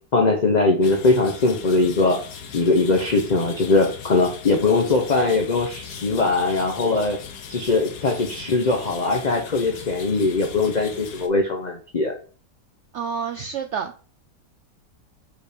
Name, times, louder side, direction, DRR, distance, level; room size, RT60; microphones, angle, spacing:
voice 1, 0.1-2.2 2.5-7.2 7.5-12.1, left 3 dB, 40° left, 3 dB, 0.6 m, -21 dB
sound 1, 0.8-11.3, left 7 dB, 70° left, 1.4 m, -39 dB
voice 2, 12.9-14.0, right 6 dB, 75° right, 6 dB, 0.6 m, -29 dB
5.0 x 4.9 x 5.1 m, 0.42 s
omnidirectional pair, 1.8 m